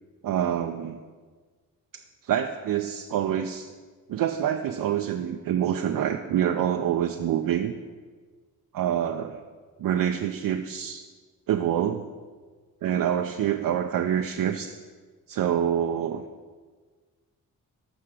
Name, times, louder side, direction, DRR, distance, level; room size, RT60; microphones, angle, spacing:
voice 1, 0.2-1.0 1.9-3.7 4.1-7.7 8.7-9.4 9.8-11.0 11.5-12.1 12.8-14.8 15.3-16.2, right 10 dB, 65° right, 5 dB, 0.5 m, -26 dB
7.5 x 5.6 x 4.9 m, 1.5 s
cardioid pair, 60°, 36 cm